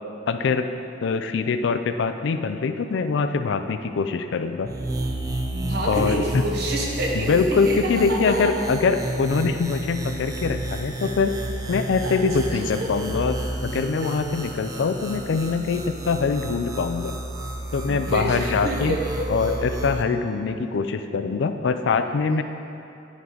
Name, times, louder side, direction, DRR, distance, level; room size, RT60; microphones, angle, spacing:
voice 1, 0.3-0.7 1.0-4.7 5.9-6.2 7.1-11.3 11.7-17.1 17.7-19.0 19.3-22.4, left 4 dB, 60° left, 9 dB, 0.4 m, -23 dB
sound 1, 4.6-20.0, right 1 dB, 20° right, 0.4 m, -31 dB
voice 2, 5.5-8.5 12.0-12.9 14.0-14.1 17.8-19.7, right 1 dB, 55° right, -2 dB, 1.1 m, -28 dB
9.6 x 4.7 x 3.8 m, 2.7 s
head